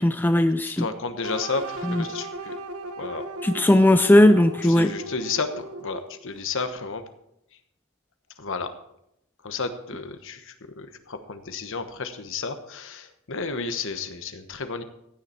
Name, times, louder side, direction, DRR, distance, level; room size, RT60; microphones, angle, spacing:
voice 1, 0.0-0.9 1.8-2.0 3.4-4.9, left 1 dB, 10° left, 10 dB, 0.3 m, -18 dB
voice 2, 0.6-2.5 3.0-3.2 4.6-7.0 8.4-8.7 9.4-14.8, left 4 dB, 60° left, 9 dB, 1.1 m, -32 dB
sound 1, 1.2-6.2, right 2 dB, 80° right, 1.1 m, -36 dB
15.5 x 9.7 x 4.4 m, 0.80 s
head